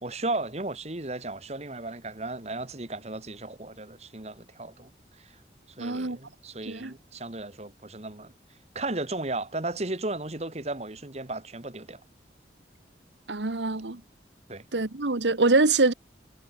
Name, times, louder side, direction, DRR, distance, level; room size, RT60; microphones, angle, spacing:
voice 1, 0.0-5.4 5.8-8.3 8.8-12.0 14.5-14.7, right 2 dB, 40° right, 1.9 m, -35 dB
voice 2, 5.8-6.2 6.7-6.9 13.3-14.0 14.7-15.9, right 3 dB, 90° right, 1.4 m, -24 dB
head